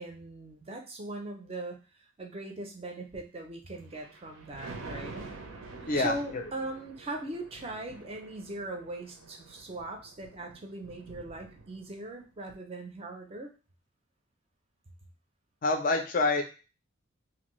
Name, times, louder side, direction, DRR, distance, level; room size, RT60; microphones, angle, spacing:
voice 1, 0.0-1.8 2.2-5.3 5.9-13.5, right 2 dB, 30° right, 3 dB, 0.4 m, -40 dB
Thunder, 3.8-12.1 12.5-12.6, right 3 dB, 75° right, 0.5 m, -47 dB
voice 2, 5.9-6.4 15.6-16.4, left 3 dB, 40° left, 5 dB, 0.4 m, -27 dB
2.6 x 2.6 x 3.0 m, 0.33 s
head